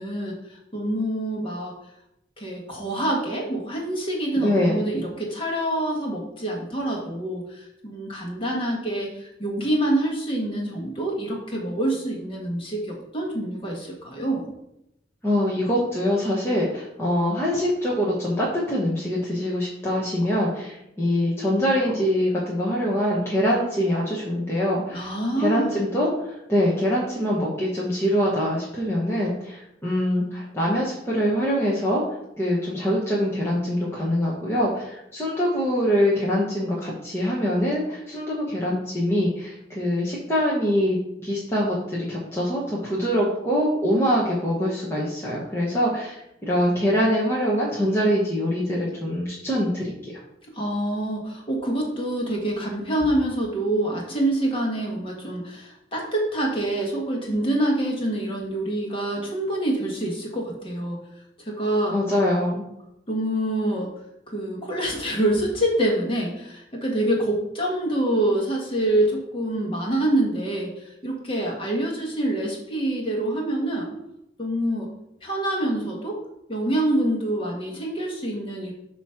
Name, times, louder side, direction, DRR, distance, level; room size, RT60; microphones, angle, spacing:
voice 1, 0.0-1.7 2.4-14.5 24.9-25.8 50.5-61.0 61.4-62.0 63.1-63.9 64.3-73.9 74.4-74.9 75.2-76.2 76.5-78.7, right 1 dB, 30° left, -1 dB, 1.6 m, -26 dB
voice 2, 4.4-4.8 15.2-25.1 25.4-32.0 32.4-50.2 61.9-62.6, equal, 15° left, -6 dB, 1.2 m, -24 dB
8.0 x 3.1 x 5.8 m, 0.82 s
head